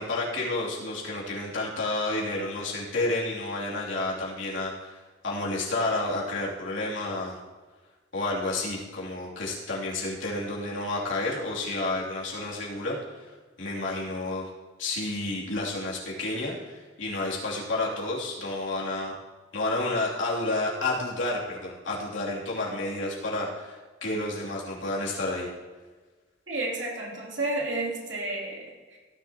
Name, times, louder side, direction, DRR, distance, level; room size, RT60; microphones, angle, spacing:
voice 1, 0.0-5.0 5.2-7.4 8.1-14.5 14.8-19.1 19.5-25.5, left 2 dB, 75° left, -5 dB, 2.9 m, -30 dB
voice 2, 26.5-29.0, right 2 dB, 70° right, -2 dB, 3.1 m, -31 dB
16.5 x 10.5 x 2.9 m, 1.4 s
head